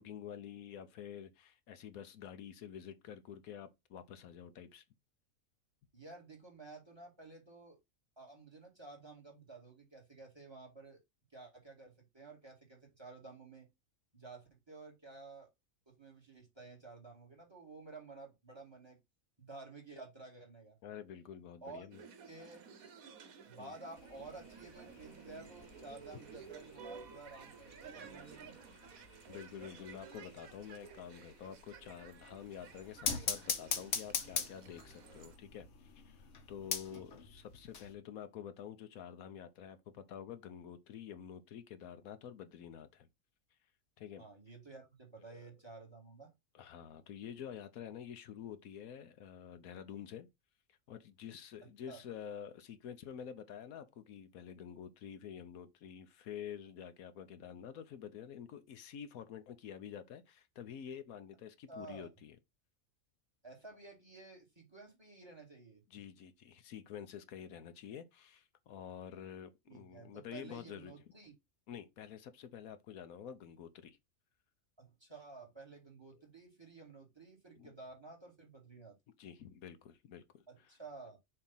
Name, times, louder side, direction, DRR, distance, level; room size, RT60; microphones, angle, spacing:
voice 1, 0.0-4.8 20.8-22.0 23.6-23.7 29.3-43.1 44.0-44.2 45.2-45.5 46.5-50.3 50.9-62.4 65.9-70.9 71.7-74.0 76.1-76.2 77.5-77.7 79.2-80.2 80.6-80.7, left 8 dB, 80° left, 1.2 m, -48 dB
voice 2, 5.9-7.8 8.2-11.0 11.3-13.7 14.1-15.5 15.9-19.0 19.4-20.8 21.6-21.8 22.3-22.7 23.5-28.5 36.9-37.2 44.2-46.3 51.9-52.0 61.7-62.1 63.4-65.8 69.7-71.3 74.8-79.0 80.5-81.2, right 3 dB, 20° right, 2.2 m, -52 dB
sound 1, 21.9-35.4, right 6 dB, 75° right, 1.4 m, -54 dB
sound 2, 24.0-37.9, left 6 dB, 60° left, 1.3 m, -44 dB
6.6 x 2.9 x 5.5 m
omnidirectional pair, 1.5 m